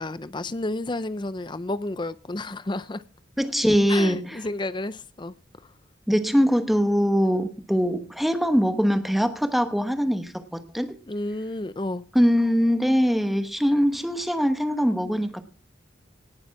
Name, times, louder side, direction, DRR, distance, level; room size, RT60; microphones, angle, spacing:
voice 1, 0.0-3.0 3.9-5.3 5.6-5.7 11.0-12.1, left 2 dB, 25° left, 0.6 m, -31 dB
voice 2, 3.4-4.4 6.1-11.0 12.1-15.4, equal, ahead, 1.1 m, -22 dB
18.5 x 7.2 x 5.8 m
head